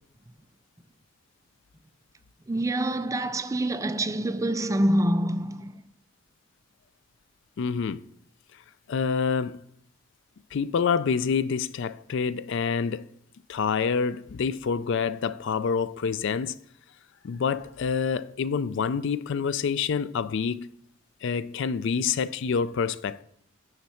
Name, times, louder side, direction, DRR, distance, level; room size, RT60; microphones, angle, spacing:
voice 1, 2.5-5.8, right 1 dB, 15° right, 0.4 m, -26 dB
voice 2, 7.6-8.1 8.9-9.6 10.5-13.1 13.5-16.6 17.2-20.7 21.2-23.2, left 6 dB, 60° left, 0.4 m, -27 dB
9.5 x 7.2 x 4.3 m
head